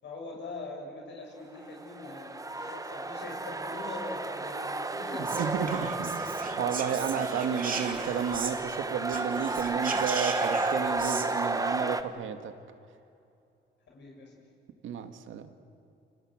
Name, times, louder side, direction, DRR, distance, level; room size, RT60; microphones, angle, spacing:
voice 1, 0.0-5.4 13.9-14.3, left 3 dB, 65° left, -1 dB, 7.3 m, -43 dB
sound 1, 1.6-12.0, right 2 dB, 15° right, 1.4 m, -32 dB
Whispering, 5.2-8.8 9.0-11.3, right 5 dB, 45° right, 2.8 m, -37 dB
voice 2, 5.3-12.5 14.8-15.5, right 7 dB, 75° right, 8 dB, 2.0 m, -32 dB
29.0 x 27.5 x 6.5 m, 2.6 s
cardioid pair, 90°, 20 cm